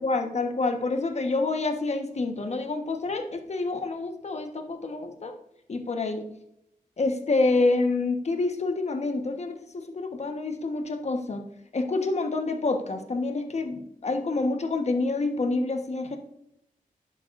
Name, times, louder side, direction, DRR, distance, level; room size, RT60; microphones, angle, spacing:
voice 1, 0.0-5.4 5.7-6.2 7.0-11.4 11.7-16.2, left 3 dB, 50° left, 5 dB, 1.3 m, -27 dB
11.0 x 8.7 x 2.6 m, 0.80 s
wide cardioid pair, 90°, 15 cm